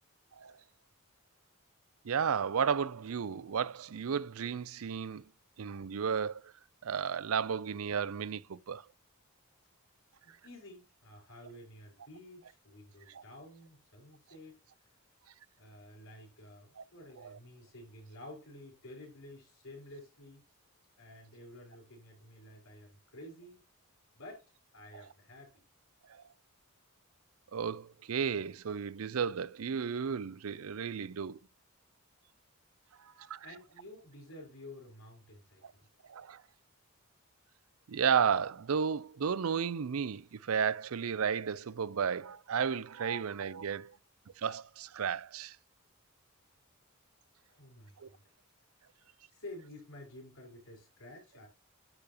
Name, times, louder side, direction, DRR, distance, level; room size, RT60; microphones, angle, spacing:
voice 1, 2.0-5.2 5.6-6.5 6.8-8.8 13.1-13.2 16.8-16.9 17.2-17.4 24.9-25.0 26.1-26.2 27.5-31.4 33.3-33.5 35.6-35.7 36.1-36.4 37.9-44.0 44.4-45.6 48.0-48.1, right 7 dB, 75° right, 0.5 m, -33 dB
voice 2, 10.2-14.6 15.6-20.4 21.0-23.6 24.2-24.4 24.7-25.6 33.1-35.9 47.5-48.2 49.3-51.5, left 1 dB, 65° left, 5.2 m, -51 dB
9.9 x 6.9 x 2.9 m
head